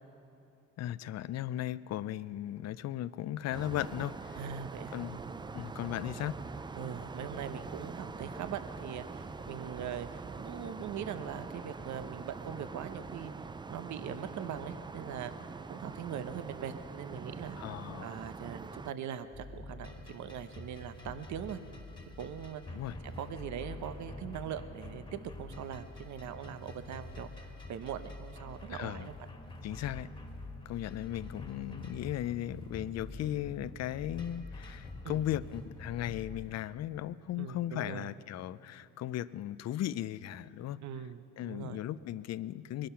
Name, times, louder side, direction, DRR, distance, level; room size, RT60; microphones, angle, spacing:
voice 1, 0.8-4.4 4.9-5.2 5.5-6.4 17.6-18.1 22.7-23.0 28.7-29.1 29.6-30.1 30.7-40.8 41.4-42.9, left 12 dB, 60° left, 17 dB, 0.5 m, -37 dB
sound 1, 3.5-18.9, right 4 dB, 15° right, 0.4 m, -44 dB
voice 2, 4.3-5.4 6.8-13.3 13.7-15.3 15.7-17.6 18.0-21.6 22.2-29.1 35.0-35.2 37.4-38.1 40.8-41.8, right 8 dB, 70° right, 11 dB, 0.8 m, -41 dB
sound 2, 19.3-36.5, left 2 dB, 15° left, 1.6 m, -46 dB
21.0 x 11.5 x 5.7 m, 2.9 s
cardioid pair, 90°, 30 cm